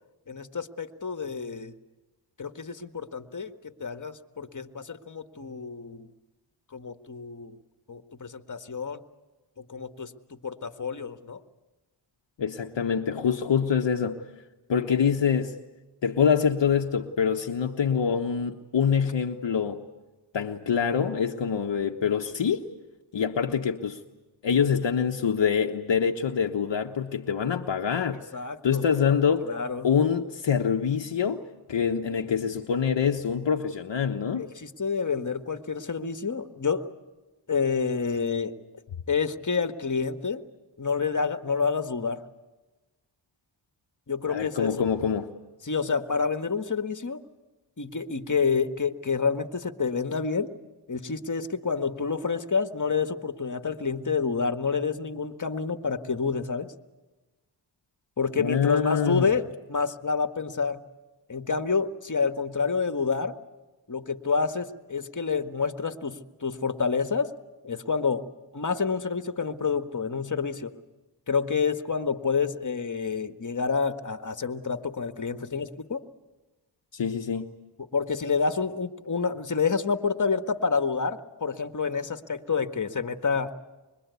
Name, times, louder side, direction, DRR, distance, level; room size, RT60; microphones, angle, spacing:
voice 1, 0.3-1.7 2.4-6.1 6.7-7.6 7.9-9.0 9.6-11.4 28.1-29.1 29.4-29.9 34.4-36.9 37.5-38.5 39.1-40.4 40.8-42.2 44.1-44.9 45.6-47.2 47.8-50.5 50.9-56.7 58.2-60.8 61.3-63.4 63.9-67.3 67.6-68.2 68.5-70.7 71.3-76.0 77.8-83.6, left 5 dB, 40° left, 1.8 m, -28 dB
voice 2, 12.4-14.2 14.7-15.6 16.0-19.8 20.3-22.6 23.1-24.0 24.4-28.2 28.6-29.5 29.8-31.4 31.7-34.5 44.3-45.3 58.4-59.3 76.9-77.5, left 7 dB, 60° left, 1.3 m, -25 dB
25.5 x 22.5 x 8.4 m
cardioid pair, 50°, 48 cm